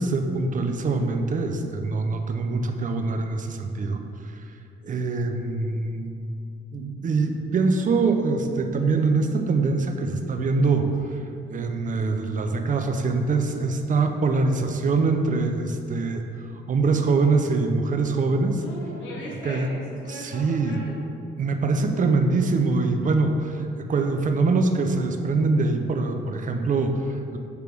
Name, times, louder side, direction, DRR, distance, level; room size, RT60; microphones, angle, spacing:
voice 1, 0.0-4.4 4.8-6.1 6.7-11.2 11.5-18.6 19.4-19.7 20.1-20.8 21.4-27.4, right 3 dB, 40° right, 5 dB, 0.6 m, -24 dB
voice 2, 18.6-21.0, left 1 dB, 75° left, -4 dB, 1.2 m, -38 dB
6.8 x 3.4 x 4.6 m, 2.5 s
cardioid pair, 90°, 20 cm